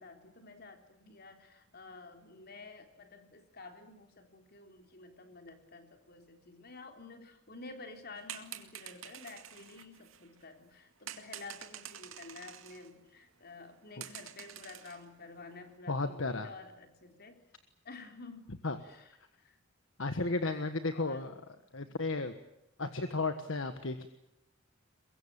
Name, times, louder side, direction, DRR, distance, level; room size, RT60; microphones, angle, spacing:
voice 1, 0.0-17.4 17.8-18.5 18.8-19.6 20.4-21.4 21.8-22.0, left 3 dB, 50° left, 5 dB, 3.7 m, -51 dB
sound 1, 8.2-10.4 11.1-12.9 13.2-13.3 13.7-13.8 14.0-15.1 15.4-15.7, right 10 dB, 80° right, 2.4 m, -48 dB
voice 2, 15.9-16.5 18.6-18.8 20.0-21.3 21.7-22.3 22.8-24.1, left 3 dB, 70° left, 9 dB, 1.5 m, -33 dB
23.0 x 22.5 x 8.8 m, 0.83 s
head